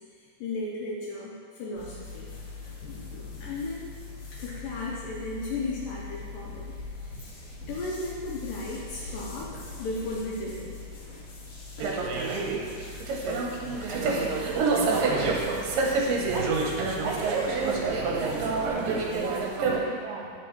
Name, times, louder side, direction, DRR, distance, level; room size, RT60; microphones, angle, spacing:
voice 1, 0.1-2.3 2.8-3.9 4.4-7.2 7.7-10.8, left 2 dB, 80° left, -4 dB, 2.1 m, -35 dB
sound 1, 1.8-19.6, left 3 dB, 60° left, 2.8 m, -42 dB
sound 2, 11.8-19.8, right 4 dB, 75° right, 2.2 m, -27 dB
voice 2, 14.0-14.4 16.3-16.6 17.0-20.3, right 5 dB, 90° right, -2 dB, 1.9 m, -35 dB
11.5 x 4.8 x 3.0 m, 2.2 s
omnidirectional pair, 4.6 m